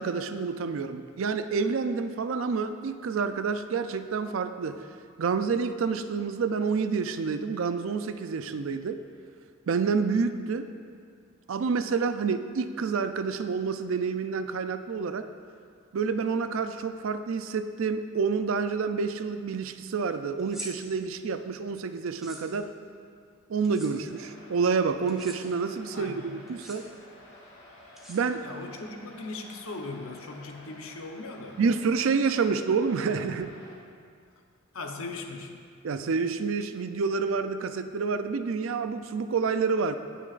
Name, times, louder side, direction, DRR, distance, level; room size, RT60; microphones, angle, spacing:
voice 1, 0.0-4.8 5.2-9.0 9.7-10.7 11.5-15.3 15.9-22.7 23.5-26.9 28.1-28.5 31.6-33.5 35.8-40.0, right 5 dB, 70° right, 10 dB, 0.4 m, -28 dB
sound 1, 20.4-20.7 22.1-22.4 23.6-23.9 25.1-25.4 26.5-26.8 28.0-28.6, equal, ahead, 1.1 m, -43 dB
sound 2, 24.1-33.7, left 1 dB, 55° left, 1.6 m, -51 dB
voice 2, 25.9-26.5 28.4-31.6 34.7-35.6, left 3 dB, 80° left, 3 dB, 0.8 m, -39 dB
17.0 x 6.0 x 2.5 m, 2.2 s
head